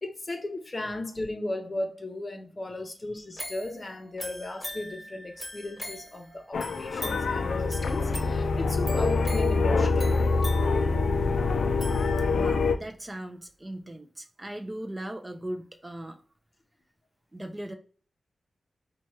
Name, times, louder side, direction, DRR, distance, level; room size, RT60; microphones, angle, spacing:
voice 1, 0.0-10.2, left 1 dB, 35° left, 0.6 m, -36 dB
sound 1, 3.4-12.6 13.1-13.2, equal, 5° left, 1.2 m, -42 dB
sound 2, 6.5-12.8, left 3 dB, 80° left, 0.3 m, -25 dB
voice 2, 12.3-16.2 17.3-17.7, right 1 dB, 20° right, 0.4 m, -38 dB
4.2 x 2.2 x 3.1 m
cardioid pair, 75°, 0 cm